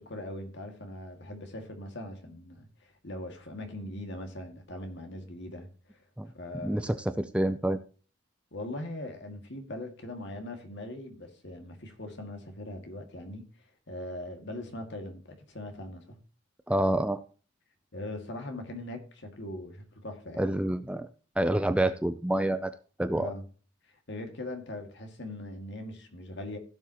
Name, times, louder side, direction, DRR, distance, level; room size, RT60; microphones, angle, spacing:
voice 1, 0.0-6.0 6.3-7.0 8.5-13.5 13.9-16.2 17.9-20.6 23.1-23.4 24.1-26.6, left 1 dB, 55° left, 2.0 m, -41 dB
voice 2, 6.6-7.8 16.7-17.2 20.4-21.1 21.4-22.7 23.0-23.3, right 1 dB, 5° right, 0.4 m, -27 dB
16.5 x 7.1 x 2.9 m
head